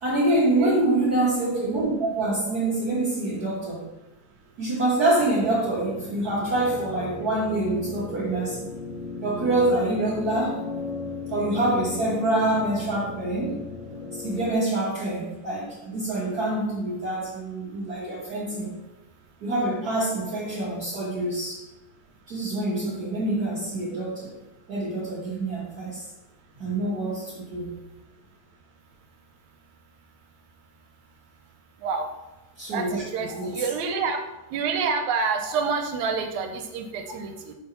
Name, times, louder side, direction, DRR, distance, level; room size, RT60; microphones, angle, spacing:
voice 1, 0.0-3.9 4.6-8.7 9.2-10.6 11.3-13.6 14.2-18.7 19.4-21.6 22.3-24.3 24.7-26.1 26.5-27.7 32.6-33.6, right 2 dB, 55° right, -7 dB, 1.1 m, -26 dB
sound 1, 5.2-14.5, left 3 dB, 70° left, 2.4 m, -36 dB
voice 2, 32.7-34.2 34.5-37.6, right 5 dB, 80° right, 5 dB, 2.0 m, -28 dB
6.0 x 3.5 x 5.7 m, 1.0 s
omnidirectional pair, 3.5 m